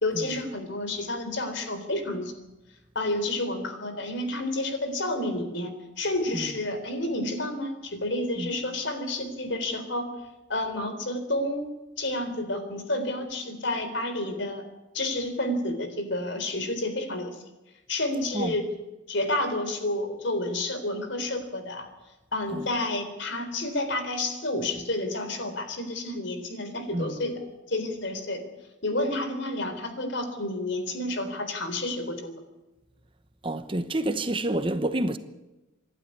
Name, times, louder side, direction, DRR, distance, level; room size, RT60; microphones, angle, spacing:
voice 1, 0.0-2.3 3.0-5.7 6.0-10.1 10.5-11.7 12.0-14.6 14.9-17.3 17.9-18.7 19.1-21.9 22.3-27.4 27.7-28.4 28.8-32.4, left 1 dB, 60° left, 3.8 m, -30 dB
voice 2, 26.9-27.3 33.4-35.2, right 1 dB, 25° right, 0.9 m, -29 dB
26.5 x 12.0 x 9.5 m
head